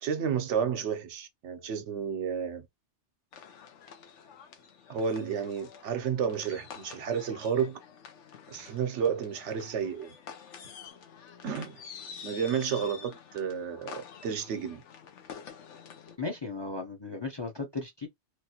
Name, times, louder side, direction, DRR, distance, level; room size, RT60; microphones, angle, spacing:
voice 1, 0.0-2.7 4.9-7.8 8.5-10.1 11.4-11.8 12.2-14.8, right 7 dB, 75° right, 1.0 m, -31 dB
sound 1, 3.3-16.2, left 6 dB, 85° left, 1.1 m, -48 dB
voice 2, 16.2-18.1, left 3 dB, 30° left, 0.6 m, -36 dB
3.2 x 2.6 x 2.8 m
omnidirectional pair, 1.2 m